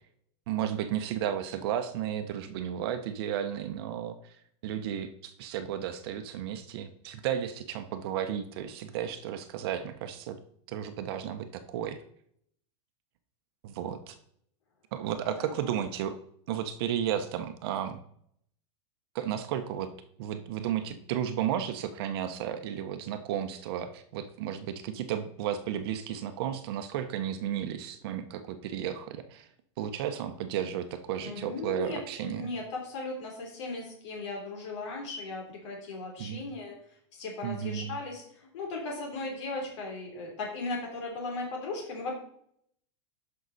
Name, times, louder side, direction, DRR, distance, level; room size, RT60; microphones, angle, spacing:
voice 1, 0.5-4.3 4.6-10.4 10.7-12.0 13.6-14.2 14.9-16.2 16.5-18.0 19.1-19.9 20.2-29.5 29.8-32.5 36.2-36.5 37.4-38.0, right 10 dB, 50° right, 8 dB, 0.9 m, -33 dB
voice 2, 15.2-15.7 31.2-36.7 37.1-38.2 38.5-42.1, left 3 dB, 70° left, 0 dB, 3.3 m, -37 dB
11.5 x 5.7 x 4.1 m, 0.67 s
supercardioid pair, 165°, 16 cm